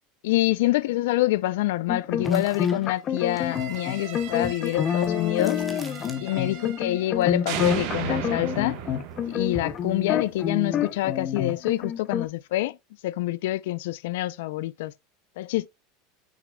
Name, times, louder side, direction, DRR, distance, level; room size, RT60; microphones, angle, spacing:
voice 1, 0.2-5.6 6.2-8.8 9.3-12.8 13.0-14.9 15.4-15.7, left 16 dB, 75° left, 0.4 m, -26 dB
sound 1, 1.9-12.3, left 8 dB, 25° left, 0.7 m, -27 dB
sound 2, 2.2-6.7 6.9-8.6 8.9-9.9, right 1 dB, ahead, 1.1 m, -43 dB
sound 3, 3.3-7.2 7.5-10.5, right 10 dB, 50° right, 1.2 m, -36 dB
7.1 x 6.1 x 2.2 m
supercardioid pair, 165°, 0 cm